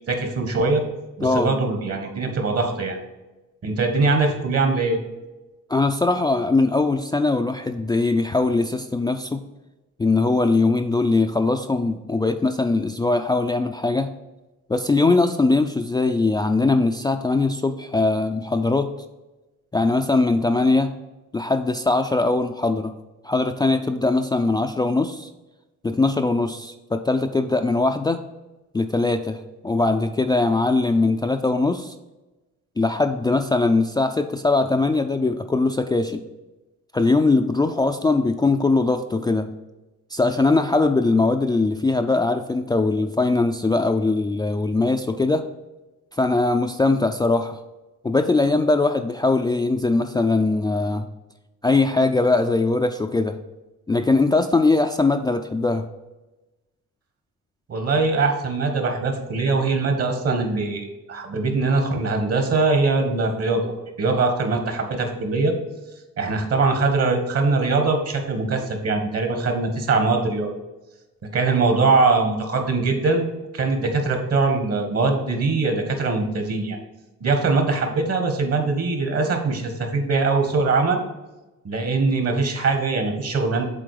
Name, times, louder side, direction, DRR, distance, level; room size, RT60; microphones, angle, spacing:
voice 1, 0.1-0.8 1.2-3.0 3.6-5.0 57.7-65.5 66.2-70.5 71.3-73.3 73.5-76.8 77.2-81.0 81.6-83.6, right 3 dB, 55° right, 5 dB, 1.6 m, -22 dB
voice 2, 5.7-9.4 10.0-14.1 14.7-18.9 19.7-20.9 21.3-22.9 23.2-25.3 25.8-28.2 28.7-31.9 32.8-36.2 36.9-39.5 40.1-45.4 46.1-47.6 48.0-51.1 51.6-53.4 53.9-55.8, left 3 dB, 15° left, 5 dB, 0.3 m, -21 dB
7.6 x 3.9 x 4.9 m, 1.1 s
cardioid pair, 90°, 30 cm